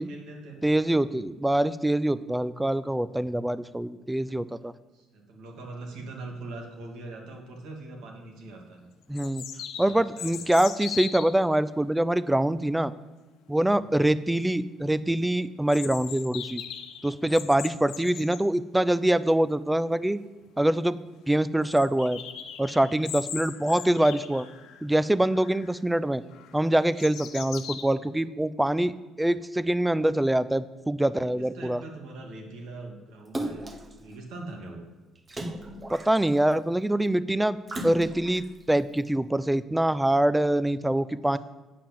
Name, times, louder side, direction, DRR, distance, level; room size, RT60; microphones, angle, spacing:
voice 1, 0.0-0.7 1.0-1.2 4.9-8.9 9.8-10.4 31.2-34.9 41.2-41.4, right 2 dB, 80° right, 1 dB, 2.3 m, -42 dB
voice 2, 0.6-4.7 9.1-9.4 9.8-12.9 13.5-16.6 17.0-20.2 20.6-21.0 21.3-22.2 22.6-24.5 24.8-26.2 26.5-28.9 29.2-31.8 35.9-37.6 37.8-41.4, right 1 dB, 5° right, 16 dB, 0.4 m, -24 dB
sound 1, 8.1-8.2 9.1-11.4 15.7-18.4 20.1-20.2 20.4-20.5 20.9-21.0 21.6-24.8 25.3-25.8 26.3-27.8, left 9 dB, 80° left, 1.0 m, -39 dB
Splash splatter, 33.3-33.9 35.3-36.5 37.7-38.5 39.0-39.1, right 1 dB, 25° right, 1.0 m, -35 dB
8.5 x 5.8 x 7.5 m, 1.2 s
cardioid pair, 95°, 0 cm